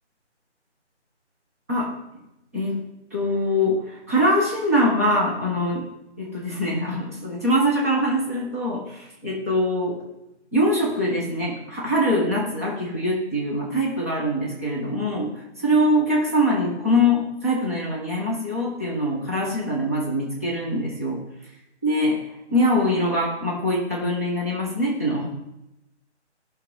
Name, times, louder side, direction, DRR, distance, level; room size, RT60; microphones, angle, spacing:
voice 1, 3.1-5.8 6.2-10.0 10.5-15.3 15.6-21.2 21.8-22.2 22.5-25.3, equal, 15° right, -6 dB, 1.1 m, -23 dB
18.0 x 6.4 x 4.0 m, 0.90 s
hypercardioid pair, 180°, 35 cm